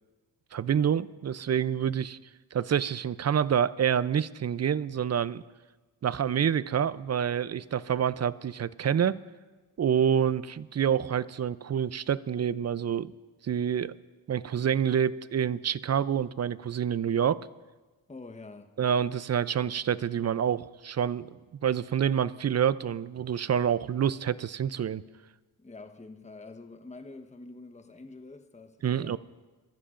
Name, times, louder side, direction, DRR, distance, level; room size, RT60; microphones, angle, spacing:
voice 1, 0.5-2.2 2.5-5.4 6.0-9.2 9.8-13.1 13.4-14.0 14.3-17.4 18.8-25.0 28.8-29.2, right 8 dB, 35° right, 0.5 m, -27 dB
voice 2, 18.1-18.7 25.6-29.2, left 3 dB, 15° left, 1.1 m, -46 dB
22.0 x 14.5 x 2.5 m
supercardioid pair, 50°, 46 cm